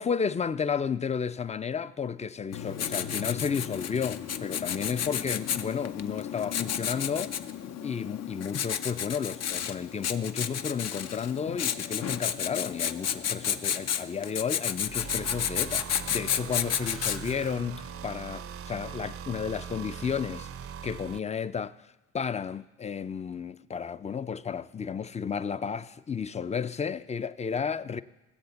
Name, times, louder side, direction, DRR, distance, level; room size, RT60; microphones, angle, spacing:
voice 1, 0.0-7.3 7.8-20.5 20.8-28.0, left 6 dB, 20° left, 0.5 m, -32 dB
Writing, 2.5-17.5, left 8 dB, 60° left, 0.7 m, -32 dB
sound 1, 14.7-21.2, right 7 dB, 50° right, 0.6 m, -41 dB
17.0 x 7.8 x 7.0 m
cardioid pair, 90°, 30 cm